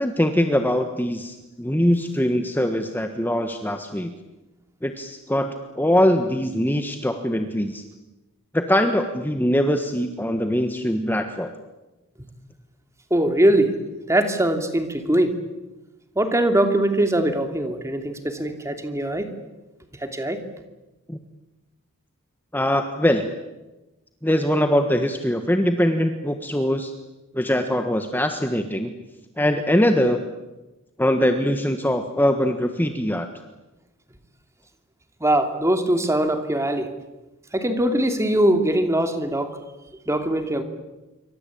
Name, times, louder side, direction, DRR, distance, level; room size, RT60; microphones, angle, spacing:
voice 1, 0.0-4.1 4.8-7.8 8.5-11.5 21.1-21.2 22.5-23.3 24.2-26.9 27.3-28.9 29.4-30.2 31.0-33.3, equal, 10° left, 6 dB, 1.4 m, -22 dB
voice 2, 13.1-13.7 14.1-15.4 16.2-19.3 20.0-20.4 35.2-36.9 37.5-39.6 40.1-40.6, right 1 dB, 15° right, 7 dB, 2.7 m, -21 dB
27.5 x 24.5 x 8.6 m, 1.0 s
head